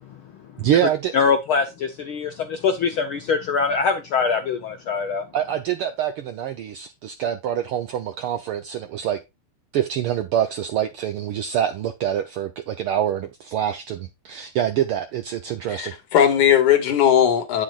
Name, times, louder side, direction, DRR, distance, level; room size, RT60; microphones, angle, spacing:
voice 1, 0.6-1.1 5.3-9.2 9.7-16.0, right 10 dB, 75° right, 1.3 m, -25 dB
voice 2, 1.1-5.2, left 5 dB, 70° left, 1.3 m, -23 dB
voice 3, 15.7-17.6, left 9 dB, 85° left, 3.2 m, -18 dB
8.6 x 7.6 x 2.4 m
omnidirectional pair, 3.3 m